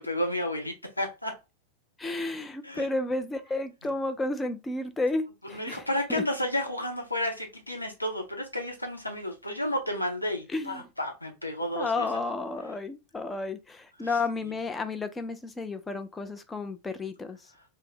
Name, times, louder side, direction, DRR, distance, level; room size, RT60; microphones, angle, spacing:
voice 1, 0.0-1.3 2.6-2.9 5.5-12.1, left 1 dB, 85° left, 0.7 m, -31 dB
voice 2, 2.0-6.2 10.5-10.9 11.8-17.7, left 3 dB, 15° left, 0.4 m, -32 dB
2.7 x 2.0 x 3.7 m
figure-of-eight pair, 90°, 0 cm